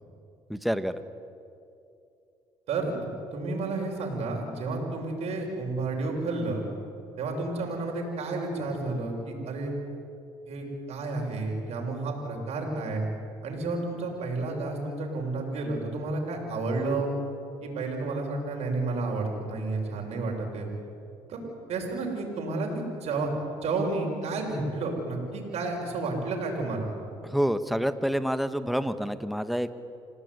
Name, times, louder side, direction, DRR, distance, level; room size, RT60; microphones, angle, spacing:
voice 1, 0.5-1.0 27.2-29.7, equal, ahead, 11 dB, 1.5 m, -28 dB
voice 2, 3.3-6.6 7.2-9.7 10.4-13.0 13.4-17.1 17.6-20.7 21.3-21.4 21.7-23.3 23.6-26.9, right 3 dB, 65° right, 0 dB, 6.6 m, -31 dB
28.0 x 18.0 x 9.8 m, 2.6 s
supercardioid pair, 75°, 11 cm